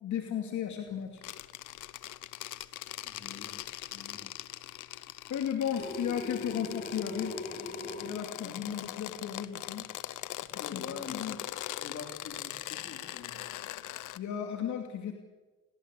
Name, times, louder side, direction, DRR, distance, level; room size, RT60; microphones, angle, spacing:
voice 1, 0.0-1.2 5.3-7.4 8.0-9.9 10.5-11.4 14.1-15.1, left 9 dB, 70° left, 4 dB, 2.7 m, -35 dB
sound 1, 1.2-14.2, left 15 dB, 85° left, 1.0 m, -41 dB
voice 2, 3.0-3.6 3.9-4.3 8.4-8.8 10.6-13.4, left 5 dB, 50° left, 6 dB, 3.8 m, -46 dB
sound 2, 5.8-8.2, left 2 dB, 30° left, 4.6 m, -40 dB
29.5 x 18.5 x 8.4 m, 1.2 s
cardioid pair, 90°, 30 cm